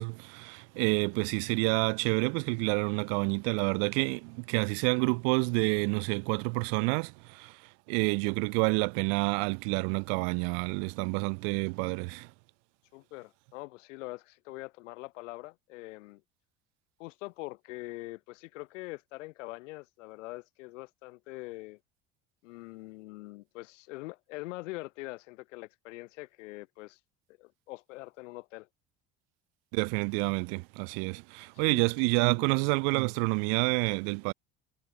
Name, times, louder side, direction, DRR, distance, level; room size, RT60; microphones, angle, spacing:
voice 1, 0.0-12.3 29.7-34.3, right 40 dB or more, 65° right, 0.7 m, -28 dB
voice 2, 12.9-16.2 17.0-21.8 22.4-27.0 27.4-28.7 31.6-31.9 32.4-32.6, left 21 dB, 75° left, 2.6 m, -43 dB
hypercardioid pair, 65°, 37 cm